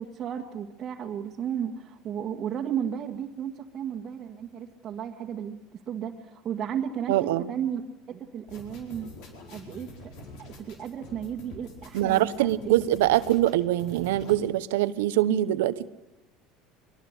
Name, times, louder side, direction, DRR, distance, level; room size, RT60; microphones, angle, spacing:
voice 1, 0.0-7.8 8.1-9.1 9.5-10.1 10.4-12.8, right 9 dB, 40° right, -2 dB, 1.8 m, -34 dB
voice 2, 7.1-7.5 11.9-15.9, right 14 dB, 85° right, 15 dB, 1.0 m, -24 dB
sound 1, 8.5-14.4, left 1 dB, 70° left, 4.6 m, -46 dB
22.5 x 21.0 x 8.3 m, 0.93 s
supercardioid pair, 105°, 0 cm